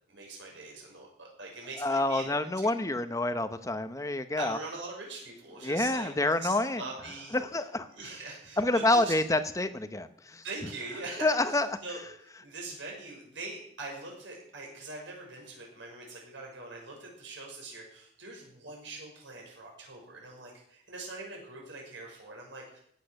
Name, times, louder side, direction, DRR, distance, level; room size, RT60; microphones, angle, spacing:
voice 1, 0.1-2.8 4.4-6.1 6.4-7.4 8.0-9.1 10.4-12.0 12.4-22.8, right 3 dB, 80° right, -1 dB, 6.2 m, -42 dB
voice 2, 1.8-4.6 5.6-6.8 7.3-7.9 8.6-10.4 11.2-11.7, left 2 dB, 15° left, 10 dB, 0.8 m, -28 dB
16.5 x 8.5 x 6.7 m, 0.69 s
head